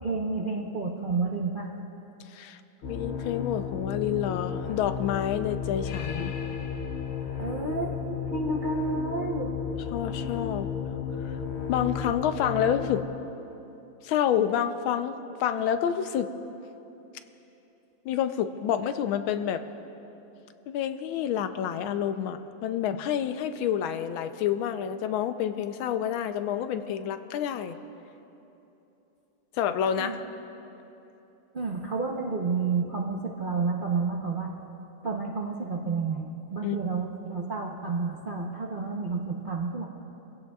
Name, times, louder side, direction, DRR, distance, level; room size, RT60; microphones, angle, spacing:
voice 1, 0.0-1.7 7.4-9.5 30.0-30.2 31.5-34.5 35.0-39.9, right 4 dB, 55° right, -2 dB, 0.5 m, -30 dB
sound 1, 2.8-13.0, left 7 dB, 70° left, 0.6 m, -33 dB
voice 2, 2.9-6.3 9.9-10.7 11.7-13.0 14.0-16.3 18.0-19.6 20.7-27.8 29.6-30.2 36.6-36.8, left 9 dB, 85° left, 10 dB, 1.5 m, -28 dB
23.5 x 16.0 x 2.3 m, 3.0 s
omnidirectional pair, 2.2 m